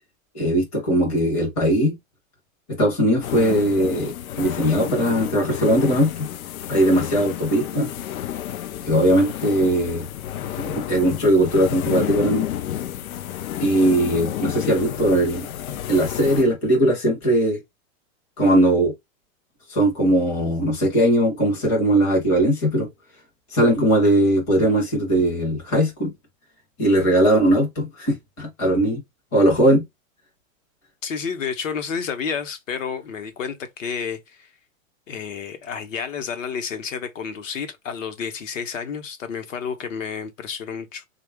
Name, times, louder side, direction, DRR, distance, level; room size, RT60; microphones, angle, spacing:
voice 1, 0.3-2.0 2.8-6.3 6.7-7.9 8.8-10.1 10.6-12.5 13.6-15.5 15.9-17.6 18.4-18.9 19.7-22.9 23.5-26.1 26.8-29.0 29.3-29.8, right 1 dB, 10° left, 0.6 m, -19 dB
sound 1, 3.2-16.4, left 11 dB, 85° left, 0.6 m, -30 dB
voice 2, 31.0-34.5 35.1-41.1, left 6 dB, 65° left, 0.9 m, -30 dB
3.7 x 2.3 x 3.4 m
supercardioid pair, 175°, 41 cm